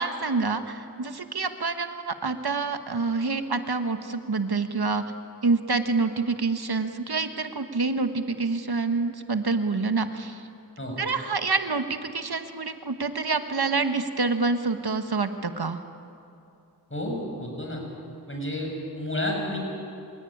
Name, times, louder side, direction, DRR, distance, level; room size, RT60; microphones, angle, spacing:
voice 1, 0.0-5.0 5.4-10.4 11.0-15.8, right 4 dB, 85° right, 8 dB, 1.4 m, -27 dB
voice 2, 16.9-17.8 18.3-19.6, left 1 dB, 35° left, 0 dB, 7.0 m, -31 dB
25.5 x 17.5 x 10.0 m, 2.6 s
wide cardioid pair, 50°, 37 cm